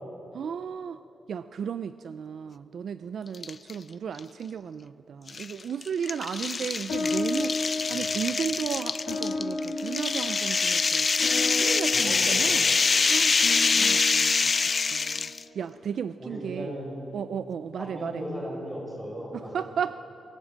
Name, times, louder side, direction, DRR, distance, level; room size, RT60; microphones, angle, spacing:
voice 1, 0.3-1.0 1.3-7.6 7.9-11.1 11.5-12.7 13.0-14.5 14.8-16.8 17.1-18.2 19.3-19.9, right 7 dB, 65° right, 13 dB, 0.4 m, -34 dB
sound 1, 3.3-3.7 4.2-4.3 5.3-15.4, left 4 dB, 35° left, 0.4 m, -25 dB
sound 2, 6.9-15.6, left 3 dB, 85° left, 3.7 m, -34 dB
voice 2, 11.9-12.8 16.2-16.9 17.8-19.5, equal, 15° right, -2 dB, 6.6 m, -36 dB
24.0 x 16.5 x 7.4 m, 3.0 s
wide cardioid pair, 135°, 0 cm